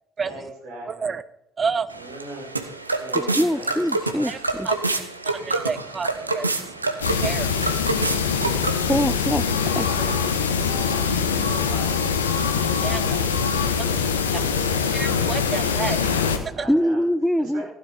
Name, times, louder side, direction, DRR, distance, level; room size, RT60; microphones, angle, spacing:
voice 1, 0.2-1.1 1.9-2.5 3.0-3.8 8.3-9.2 9.9-12.2 12.8-14.5 16.5-17.0 17.4-17.6, right 1 dB, 60° right, 5.2 m, -40 dB
voice 2, 0.9-1.2 1.6-1.9 4.3-4.4 4.6-4.9 5.2-7.9 12.8-13.0 14.3-14.4 14.9-16.6, right 5 dB, 30° right, 0.8 m, -30 dB
sound 1, 1.9-9.0, right 3 dB, 85° right, 0.9 m, -27 dB
voice 3, 3.4-4.7 8.9-9.5 9.8-9.9 16.7-17.6, equal, ahead, 0.6 m, -23 dB
sound 2, 7.0-16.4, left 6 dB, 80° left, 1.1 m, -23 dB
15.0 x 10.0 x 5.4 m
figure-of-eight pair, 50°, 0 cm